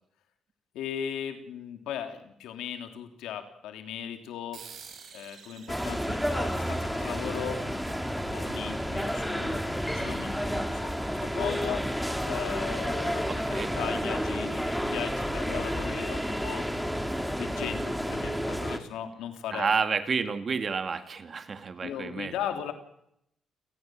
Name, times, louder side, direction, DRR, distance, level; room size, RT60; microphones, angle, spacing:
voice 1, 0.7-4.7 5.1-11.9 12.2-16.7 17.4-19.7 21.8-22.7, left 9 dB, 90° left, 6 dB, 3.1 m, -37 dB
sound 1, 4.5-9.5, right 6 dB, 65° right, 6.6 m, -51 dB
sound 2, 5.7-18.8, equal, ahead, 2.3 m, -30 dB
voice 2, 13.3-13.7 19.5-22.3, right 5 dB, 40° right, 9 dB, 2.2 m, -30 dB
29.0 x 17.5 x 7.6 m, 0.76 s
cardioid pair, 90°, 0 cm